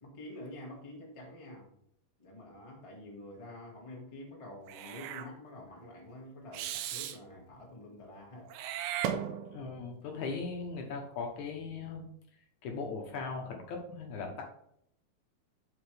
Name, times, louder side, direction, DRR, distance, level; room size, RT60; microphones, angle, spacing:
voice 1, 0.0-1.7 2.2-8.5, left 1 dB, 50° left, -2 dB, 0.4 m, -48 dB
Meow / Hiss, 4.7-5.3 6.5-7.2 8.5-9.7, right 10 dB, 75° right, 2.1 m, -36 dB
voice 2, 9.5-12.1 12.6-14.4, left 4 dB, 65° left, 2 dB, 2.0 m, -38 dB
7.6 x 6.0 x 3.4 m, 0.72 s
omnidirectional pair, 4.4 m